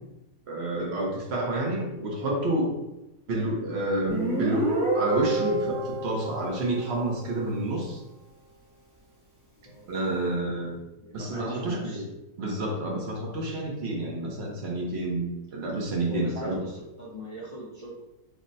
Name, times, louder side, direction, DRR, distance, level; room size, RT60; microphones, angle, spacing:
voice 1, 0.5-2.7 3.3-4.7 4.9-8.0 9.9-10.8 11.1-12.0 12.4-16.5, right 1 dB, 55° right, -1 dB, 0.8 m, -29 dB
Guitar, 4.1-7.5, right 2 dB, 15° right, 1.1 m, -29 dB
voice 2, 9.6-9.9 11.0-12.0 16.0-17.9, equal, 45° left, -7 dB, 0.4 m, -40 dB
3.4 x 2.1 x 3.9 m, 0.93 s
omnidirectional pair, 1.7 m